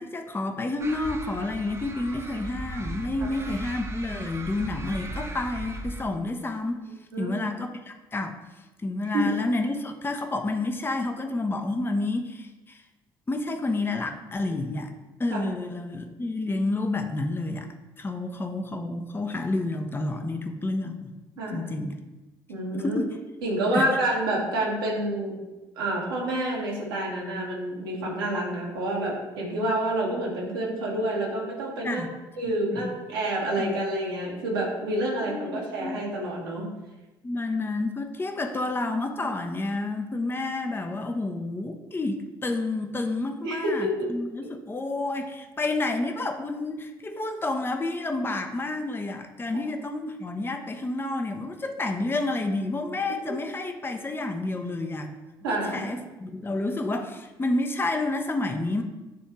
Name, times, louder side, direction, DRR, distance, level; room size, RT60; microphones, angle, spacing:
voice 1, 0.0-6.8 7.2-8.4 8.8-12.8 13.3-14.9 15.2-17.7 18.0-21.1 21.5-22.0 22.7-23.2 23.7-23.9 31.8-32.1 32.5-32.9 33.6-33.7 35.3-36.0 37.2-55.1 55.5-58.8, left 2 dB, 20° left, 5 dB, 0.7 m, -30 dB
sound 1, 0.8-6.0, right 2 dB, 25° right, 0.9 m, -37 dB
voice 2, 22.5-23.0 23.4-25.4 25.7-32.0 32.4-36.7 43.4-44.1 55.4-55.9, right 1 dB, 75° right, -4 dB, 1.4 m, -28 dB
9.3 x 3.3 x 3.1 m, 1.1 s
figure-of-eight pair, 50°, 12 cm